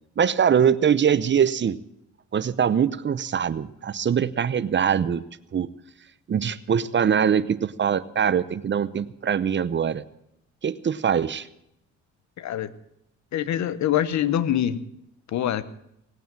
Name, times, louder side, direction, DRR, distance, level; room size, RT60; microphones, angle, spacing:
voice 1, 0.2-1.8 2.3-5.2 5.5-5.7 6.3-10.0 10.6-11.5, right 8 dB, 40° right, 17 dB, 0.7 m, -22 dB
voice 2, 12.4-12.7 13.3-14.8 15.3-15.6, left 11 dB, 70° left, 16 dB, 0.9 m, -24 dB
18.5 x 9.1 x 7.4 m, 0.80 s
cardioid pair, 90°, 30 cm